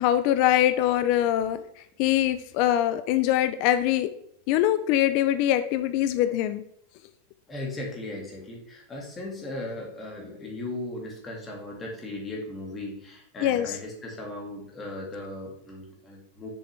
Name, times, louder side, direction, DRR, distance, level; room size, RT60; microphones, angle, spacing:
voice 1, 0.0-1.6 2.0-4.1 4.5-6.6 13.4-13.7, left 12 dB, 45° left, 11 dB, 0.5 m, -23 dB
voice 2, 7.5-16.5, left 2 dB, 15° left, -1 dB, 2.1 m, -37 dB
7.1 x 6.9 x 3.4 m, 0.71 s
supercardioid pair, 165°, 0 cm